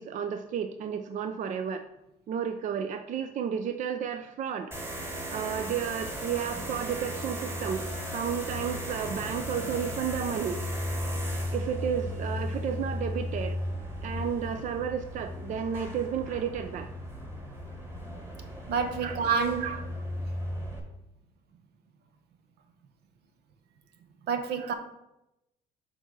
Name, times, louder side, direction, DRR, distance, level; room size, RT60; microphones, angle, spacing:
voice 1, 0.0-1.8 2.3-4.7 5.3-7.9 8.1-10.6 11.5-13.6 14.0-16.9 19.0-19.2 19.6-19.8 24.6-24.7, right 8 dB, 50° right, 8 dB, 0.5 m, -32 dB
sound 1, 4.7-20.8, equal, 15° right, 1.6 m, -35 dB
voice 2, 18.7-19.7 24.3-24.7, right 5 dB, 75° right, 7 dB, 1.0 m, -28 dB
6.1 x 4.0 x 6.2 m, 0.88 s
cardioid pair, 110°, 17 cm